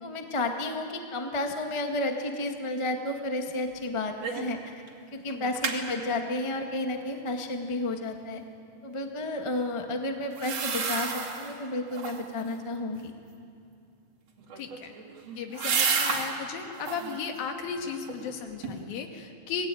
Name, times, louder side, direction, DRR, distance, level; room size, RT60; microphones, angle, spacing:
voice 1, 0.0-4.7 5.1-8.4 8.8-13.1, left 2 dB, 45° left, 4 dB, 0.3 m, -32 dB
sound 1, 4.2-4.6 4.9-5.0 5.3-5.8 10.3-11.5 11.9-12.4 14.4-16.3 16.7-17.2 17.6-18.3 18.6-18.7, right 5 dB, 45° right, 3.5 m, -31 dB
voice 2, 5.3-5.7 14.6-14.9 15.4-19.7, left 6 dB, 80° left, 4 dB, 3.6 m, -35 dB
26.0 x 18.5 x 9.2 m, 2.5 s
omnidirectional pair, 4.1 m